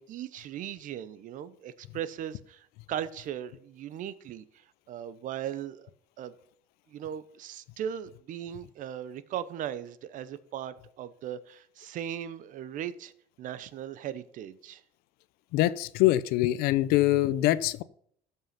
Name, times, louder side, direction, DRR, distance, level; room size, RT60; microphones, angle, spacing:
voice 1, 0.0-5.9 6.2-6.3 6.9-13.1 13.4-14.8, right 10 dB, 55° right, 15 dB, 0.8 m, -38 dB
voice 2, 15.5-17.8, left 15 dB, 80° left, 17 dB, 0.6 m, -24 dB
13.5 x 5.6 x 5.8 m, 0.64 s
cardioid pair, 120°, 16 cm